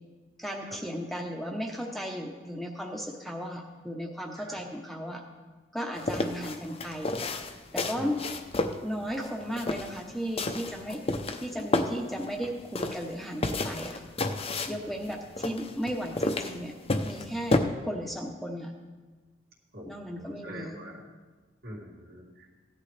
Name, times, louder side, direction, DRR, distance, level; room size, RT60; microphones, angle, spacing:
voice 1, 0.4-5.2 5.7-7.2 7.7-8.2 8.8-11.0 11.4-14.0 14.7-16.7 17.0-18.7 19.8-20.8, equal, ahead, 1 dB, 0.9 m, -35 dB
sound 1, 5.9-17.6, left 2 dB, 35° left, 0.7 m, -31 dB
voice 2, 14.7-15.1 19.7-21.0 21.6-22.5, equal, 60° right, -2 dB, 2.4 m, -44 dB
15.5 x 11.0 x 3.3 m, 1.3 s
head